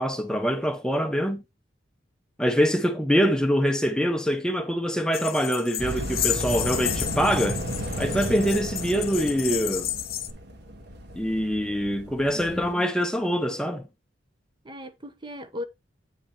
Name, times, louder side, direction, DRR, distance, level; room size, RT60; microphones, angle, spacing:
voice 1, 0.0-1.4 2.4-7.6 8.0-9.9 11.1-13.8, equal, 5° left, 0.7 m, -24 dB
sound 1, 5.1-10.3, left 11 dB, 50° left, 1.0 m, -32 dB
sound 2, 5.8-12.7, right 1 dB, 60° right, 1.6 m, -34 dB
voice 2, 12.3-12.9 14.6-15.6, left 1 dB, 25° right, 1.0 m, -37 dB
9.0 x 4.7 x 4.5 m
head